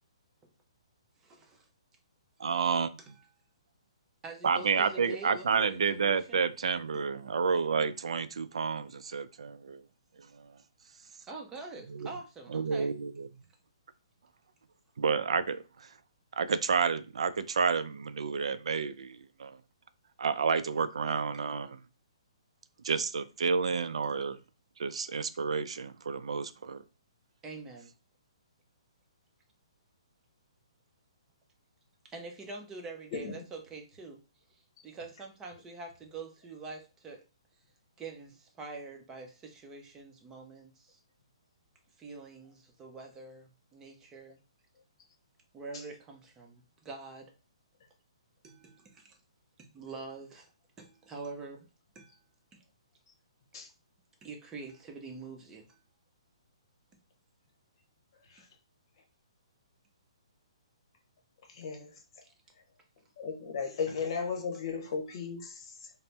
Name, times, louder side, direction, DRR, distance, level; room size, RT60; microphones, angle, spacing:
voice 1, 1.2-1.7 3.1-3.2 4.2-6.5 6.9-7.0 11.3-12.9 27.4-27.9 32.0-34.2 34.8-37.2 38.0-41.0 42.0-44.4 45.5-47.3 48.4-49.1 49.6-50.5 50.8-51.7 51.9-52.1 52.5-52.6 54.2-55.8, right 3 dB, 15° right, 0.6 m, -45 dB
voice 2, 2.4-2.9 4.4-9.8 10.3-10.5 11.9-12.1 12.5-13.3 15.0-15.9 16.4-19.6 20.2-21.8 22.8-24.4 24.8-26.8, right 5 dB, 75° right, 0.3 m, -30 dB
voice 3, 33.1-33.4 53.5-53.7 58.3-58.5 61.5-62.0 63.2-65.9, left 5 dB, 50° left, 0.8 m, -36 dB
2.6 x 2.0 x 3.3 m
hypercardioid pair, 140°, 3 cm